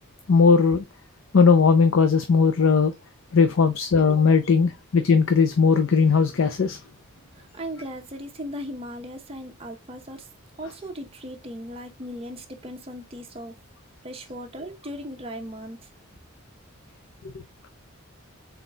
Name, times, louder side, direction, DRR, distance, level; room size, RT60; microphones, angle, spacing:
voice 1, 0.3-0.8 1.3-2.9 3.3-6.8, left 5 dB, 65° left, 0.5 m, -18 dB
voice 2, 7.4-10.3 10.6-13.6 14.0-15.8, equal, 25° right, 0.7 m, -37 dB
4.2 x 3.9 x 2.2 m
head